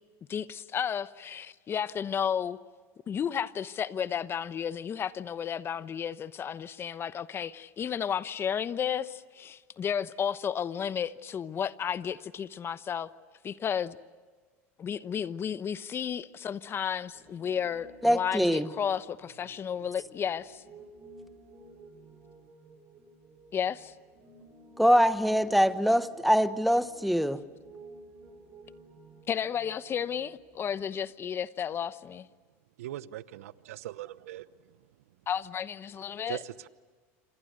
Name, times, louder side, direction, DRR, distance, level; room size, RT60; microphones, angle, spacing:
voice 1, 0.3-2.6 3.1-13.1 13.4-14.0 14.8-20.6 23.5-23.9 29.3-32.3 35.3-36.4, left 8 dB, 30° left, 1.0 m, -33 dB
Piano, 17.1-30.8, right 3 dB, 30° right, 7.0 m, -54 dB
voice 2, 18.0-18.7 24.8-27.4, equal, ahead, 1.2 m, -23 dB
voice 3, 32.8-34.5 36.3-36.7, right 14 dB, 85° right, 0.9 m, -40 dB
27.0 x 27.0 x 6.6 m
supercardioid pair, 105°, 7 cm